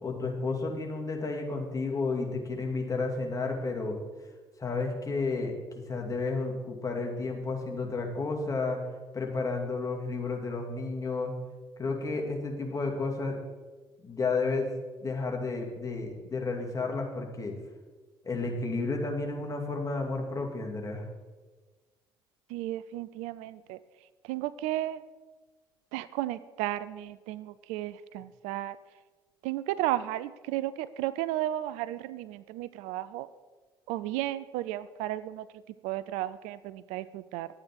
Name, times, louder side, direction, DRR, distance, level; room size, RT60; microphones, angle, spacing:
voice 1, 0.0-4.0 4.6-5.6 5.9-8.8 9.1-11.3 11.8-13.4 14.0-14.7 15.0-17.6 18.2-21.0, left 3 dB, 25° left, 1 dB, 2.4 m, -32 dB
voice 2, 22.5-23.8 24.2-25.0 25.9-28.8 29.4-33.3 33.9-35.5 35.8-37.5, right 14 dB, 70° right, 16 dB, 0.4 m, -33 dB
11.5 x 8.8 x 4.6 m, 1.3 s
hypercardioid pair, 50°, 12 cm